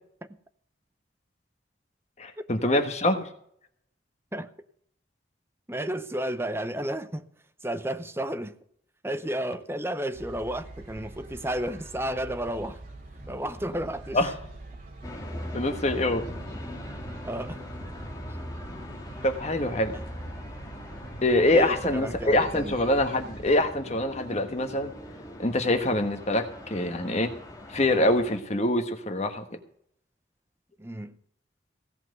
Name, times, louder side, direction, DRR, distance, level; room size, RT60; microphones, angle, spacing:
voice 1, 2.2-3.3 14.1-14.3 15.5-16.3 19.2-19.9 21.2-24.9 25.4-27.3 27.7-29.4, left 1 dB, 35° left, 1.2 m, -25 dB
voice 2, 5.7-7.3 7.6-8.6 9.0-12.8 13.3-14.2 17.2-17.6 18.3-18.4 19.9-20.0 21.5-22.7 30.8-31.2, right 1 dB, 15° right, 0.7 m, -32 dB
sound 1, 10.1-23.5, right 2 dB, 50° right, 2.6 m, -44 dB
sound 2, 15.0-28.4, left 1 dB, 20° left, 1.8 m, -41 dB
16.5 x 5.9 x 7.9 m
head